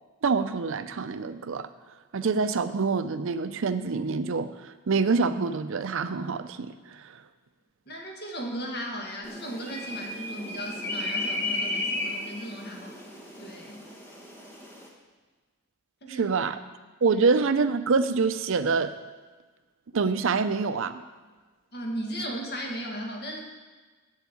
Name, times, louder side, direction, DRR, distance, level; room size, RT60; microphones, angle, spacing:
voice 1, 0.2-1.7 2.1-7.2 16.1-16.6 17.0-18.9 19.9-21.0, right 4 dB, 60° right, 11 dB, 0.5 m, -26 dB
voice 2, 7.9-13.0 13.4-13.8 16.0-16.4 17.1-17.2 21.7-23.4, equal, 45° left, 0 dB, 2.0 m, -36 dB
sound 1, 9.2-14.9, left 2 dB, 10° left, 1.4 m, -34 dB
8.1 x 7.2 x 8.4 m, 1.3 s
head